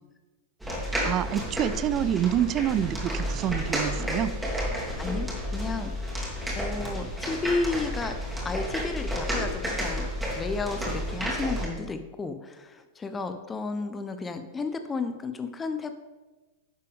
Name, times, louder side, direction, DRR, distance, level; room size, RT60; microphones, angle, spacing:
sound 1, 0.6-11.7, equal, 5° right, 2.2 m, -31 dB
voice 1, 1.0-4.5, right 10 dB, 30° right, 16 dB, 0.3 m, -27 dB
voice 2, 5.0-6.2 6.6-8.2 8.4-10.1 10.4-15.9, left 4 dB, 15° left, 8 dB, 0.7 m, -32 dB
10.0 x 6.7 x 3.5 m, 1.2 s
figure-of-eight pair, 95°, 0 cm